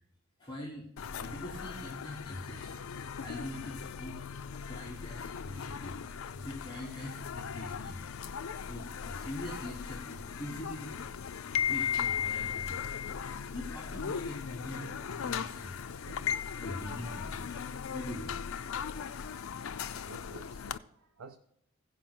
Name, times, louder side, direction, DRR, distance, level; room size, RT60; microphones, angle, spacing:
voice 1, 0.4-0.9 1.2-2.8 3.2-6.0 6.3-8.0 8.6-10.9 11.4-12.9 13.5-15.8 16.6-17.6 17.9-18.4, left 1 dB, 20° left, 1.4 m, -43 dB
sound 1, 1.0-20.8, left 7 dB, 80° left, 0.4 m, -38 dB
voice 2, 16.0-16.5 20.1-21.4, right 4 dB, 85° right, 0.6 m, -52 dB
15.5 x 5.3 x 6.0 m
head